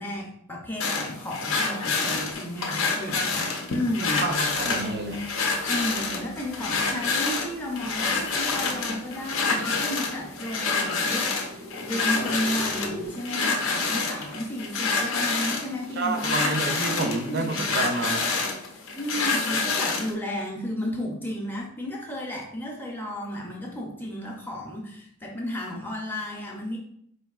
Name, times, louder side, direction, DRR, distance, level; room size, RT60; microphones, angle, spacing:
voice 1, 0.0-4.2 5.7-16.5 17.0-17.6 18.9-26.8, equal, 10° left, -1 dB, 0.5 m, -33 dB
sound 1, 0.8-20.1, left 4 dB, 65° left, 0.6 m, -28 dB
voice 2, 4.2-5.2 16.0-18.3, right 3 dB, 45° right, 4 dB, 0.4 m, -29 dB
sound 2, 5.5-13.1, left 1 dB, 85° right, 0.6 m, -45 dB
4.4 x 2.6 x 2.3 m, 0.70 s
head